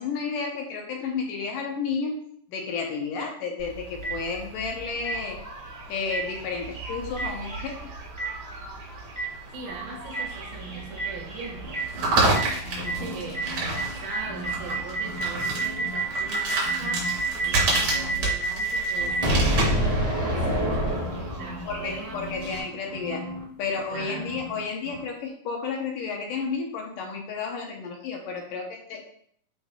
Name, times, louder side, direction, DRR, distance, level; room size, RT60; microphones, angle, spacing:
voice 1, 0.0-2.2 2.5-5.4 5.9-7.9 21.7-23.3 23.6-29.0, left 5 dB, 70° left, 2.5 m, -32 dB
sound 1, 3.6-22.6, right 2 dB, 60° right, 4.3 m, -32 dB
Boom, 4.0-4.1 5.0-5.1 6.1-6.2 7.2-7.3 8.2-8.3 9.1-9.2 10.1-10.2 11.0-11.1 11.7-11.8 12.3-12.4 12.8-12.9 13.3-13.4 13.7-13.8 14.1-21.7, right 1 dB, 20° right, 1.1 m, -26 dB
voice 2, 9.5-12.2 12.8-13.6 14.0-19.7 20.3-20.7 21.2-22.5 23.9-24.3, right 3 dB, 75° right, 3.9 m, -40 dB
sound 2, 11.6-13.9 14.2-16.3 16.6-18.1 18.9-24.6 24.8-25.0, left 1 dB, 85° left, 0.8 m, -39 dB
10.5 x 5.4 x 2.4 m
omnidirectional pair, 4.2 m